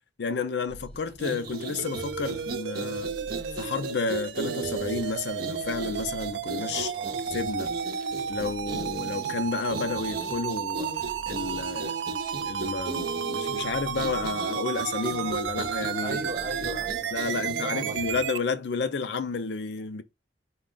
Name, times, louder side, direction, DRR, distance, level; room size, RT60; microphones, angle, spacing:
voice 1, 0.2-3.1 3.6-6.9 7.3-7.7 8.3-10.9 11.3-12.0 12.4-16.2 17.1-20.0, left 4 dB, 70° left, 0.5 m, -31 dB
sound 1, 0.7-18.2, equal, 35° left, 0.9 m, -49 dB
sound 2, 1.1-18.2, right 3 dB, 60° right, 0.7 m, -36 dB
sound 3, 1.8-18.4, right 8 dB, 80° right, 0.3 m, -33 dB
voice 2, 6.7-7.2 16.0-18.0, right 1 dB, 40° right, 1.1 m, -38 dB
4.7 x 2.3 x 3.7 m
head